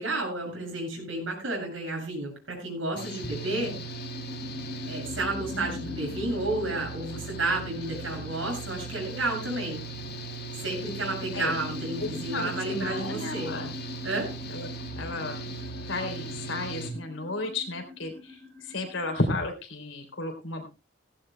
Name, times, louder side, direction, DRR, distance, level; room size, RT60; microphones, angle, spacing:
voice 1, 0.0-3.7 4.9-9.8 10.6-13.5 14.0-14.3, right 2 dB, 75° right, -1 dB, 7.4 m, -31 dB
Engine / Mechanical fan, 3.0-16.9, right 2 dB, 55° left, 2.2 m, -38 dB
sound 1, 3.2-19.3, left 3 dB, 50° right, 7.2 m, -43 dB
voice 2, 5.5-6.0 11.3-11.5 12.0-13.7 14.5-14.7 15.0-15.6 15.9-18.4 18.7-20.7, left 2 dB, 80° left, 4 dB, 3.3 m, -33 dB
17.0 x 16.0 x 2.2 m, 0.29 s
head